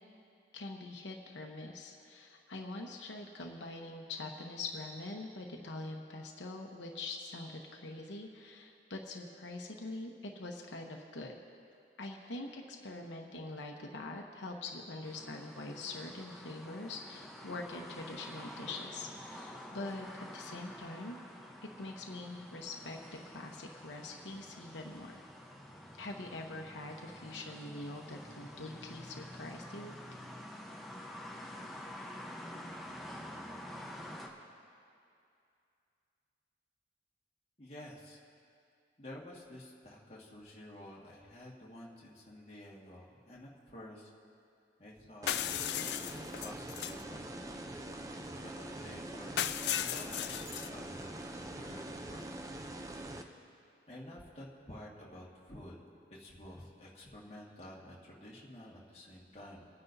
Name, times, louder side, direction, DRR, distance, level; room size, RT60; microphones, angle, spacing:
voice 1, 0.5-11.4 12.0-20.1 20.3-21.2 21.8-23.0 23.3-25.2 26.0-30.0, left 2 dB, 85° left, 1 dB, 1.0 m, -44 dB
sound 1, 15.0-34.3, left 1 dB, ahead, 0.9 m, -48 dB
voice 2, 37.6-38.2 39.0-44.1 44.8-45.3 45.6-47.3 48.4-52.7 53.9-55.8 56.1-59.7, left 1 dB, 35° left, -5 dB, 1.8 m, -51 dB
sound 2, 45.2-53.2, right 1 dB, 20° right, 0.6 m, -44 dB
sound 3, 45.3-47.0 49.4-50.7, left 11 dB, 70° left, 0.4 m, -36 dB
28.5 x 9.7 x 2.7 m, 2.5 s
head